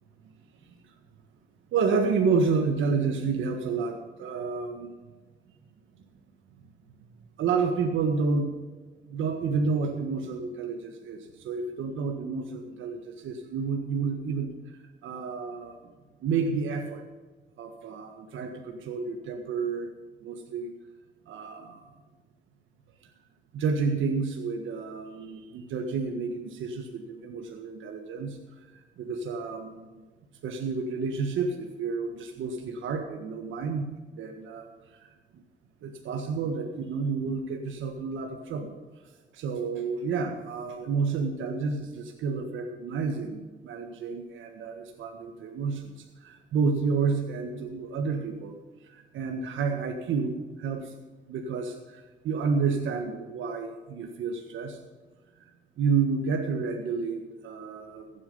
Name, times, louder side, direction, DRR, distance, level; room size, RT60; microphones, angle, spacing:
voice 1, 1.7-4.9 7.4-8.5 9.1-14.5 15.0-15.7 16.2-17.0 17.6-19.9 20.2-20.7 21.3-21.8 23.5-28.4 29.0-30.0 30.4-33.9 34.2-34.7 35.0-35.1 35.8-38.8 39.3-45.9 46.2-48.6 48.9-50.9 51.3-54.8 55.8-58.1, right 5 dB, 80° right, 4 dB, 1.5 m, -30 dB
15.5 x 8.6 x 5.5 m, 1.3 s
cardioid pair, 90°, 20 cm